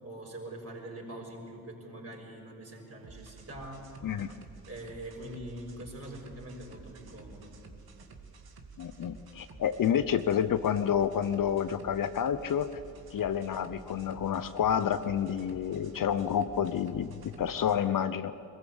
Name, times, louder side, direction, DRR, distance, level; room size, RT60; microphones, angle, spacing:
voice 1, 0.0-3.8 4.7-7.5, right 1 dB, 35° right, -1 dB, 6.4 m, -43 dB
sound 1, 3.0-17.8, right 4 dB, 55° right, 2.3 m, -51 dB
voice 2, 4.0-4.3 8.8-12.7 13.1-18.3, left 8 dB, 50° left, 12 dB, 0.9 m, -29 dB
22.5 x 14.5 x 8.1 m, 2.8 s
hypercardioid pair, 45°, 43 cm